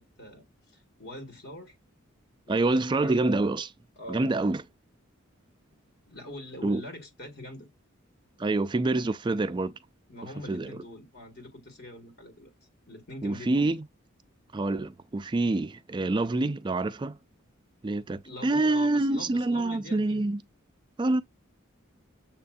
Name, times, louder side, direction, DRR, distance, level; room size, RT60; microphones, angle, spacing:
voice 1, 0.0-1.7 2.5-3.3 4.0-4.3 6.1-7.7 10.1-12.5 12.9-13.6 18.2-20.2, left 1 dB, 55° left, 1.5 m, -43 dB
voice 2, 2.5-3.7 4.1-4.6 6.6-6.8 8.4-9.7 10.5-10.8 13.2-13.8 14.5-17.2 17.8-20.4 21.0-21.2, right 2 dB, 20° right, 0.3 m, -26 dB
7.3 x 2.6 x 2.3 m
head